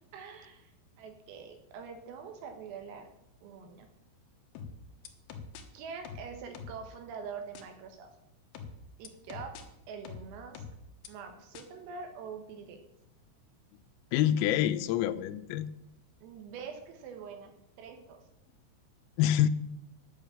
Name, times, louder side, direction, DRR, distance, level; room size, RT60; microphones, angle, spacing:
voice 1, 0.1-3.1 3.4-3.9 5.7-8.1 9.0-9.6 9.9-10.6 11.1-12.8 16.2-18.2, right 6 dB, 80° right, 5 dB, 4.0 m, -44 dB
sound 1, 4.6-5.6 6.1-6.9 7.6-7.7 8.6-9.6 10.1-11.1 11.6-11.7, left 5 dB, 70° left, 2.8 m, -44 dB
voice 2, 14.1-15.7 19.2-19.5, left 11 dB, 85° left, 12 dB, 3.2 m, -26 dB
10.5 x 6.5 x 8.6 m, 0.83 s
omnidirectional pair, 6.0 m